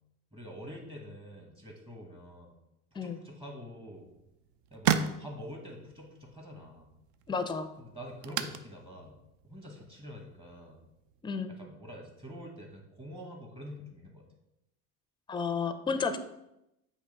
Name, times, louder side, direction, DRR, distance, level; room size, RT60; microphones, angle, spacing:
voice 1, 0.3-2.5 2.9-4.1 4.7-6.9 7.8-9.2 9.4-10.8 11.6-14.2, equal, 15° right, -1 dB, 1.3 m, -46 dB
sound 1, 3.9-11.2, right 8 dB, 60° right, 0.6 m, -37 dB
voice 2, 7.3-7.7 11.2-11.5 15.3-16.2, left 5 dB, 15° left, 10 dB, 0.5 m, -31 dB
8.0 x 3.1 x 5.2 m, 0.87 s
cardioid pair, 135°, 33 cm